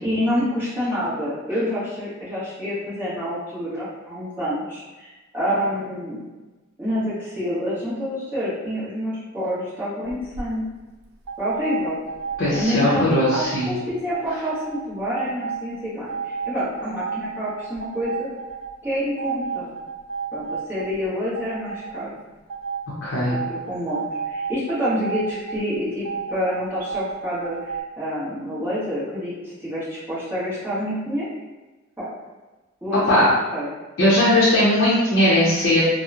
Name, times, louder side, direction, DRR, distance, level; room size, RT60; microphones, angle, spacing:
voice 1, 0.0-6.2 6.8-10.6 11.4-12.0 12.5-18.3 18.8-19.7 20.3-22.1 23.3-29.3 29.6-31.3 32.0-32.1 32.8-33.7, equal, 10° right, -11 dB, 1.0 m, -27 dB
sound 1, 10.0-10.4 11.3-13.7 14.1-14.8 15.3-15.6 16.1-18.7 19.2-21.0 21.4-22.0 22.5-22.8 23.3-25.6 26.0-27.8, right 5 dB, 85° right, 0.4 m, -31 dB
voice 2, 12.4-13.7 23.0-23.3 33.1-33.3 34.0-35.8, left 1 dB, 55° left, -8 dB, 0.6 m, -18 dB
2.9 x 2.0 x 2.4 m, 1.2 s
head